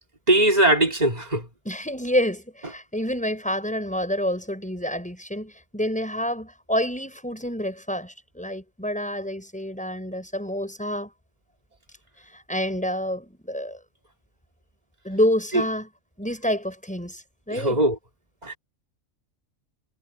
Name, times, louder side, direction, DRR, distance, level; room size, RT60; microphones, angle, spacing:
voice 1, 0.3-1.5 15.5-15.6 17.5-18.0 18.4-18.6, right 1 dB, 30° right, 3.1 m, -20 dB
voice 2, 1.6-11.1 12.3-13.8 15.0-15.9 16.2-17.8, equal, 5° left, 6.2 m, -28 dB
omnidirectional pair, 1.4 m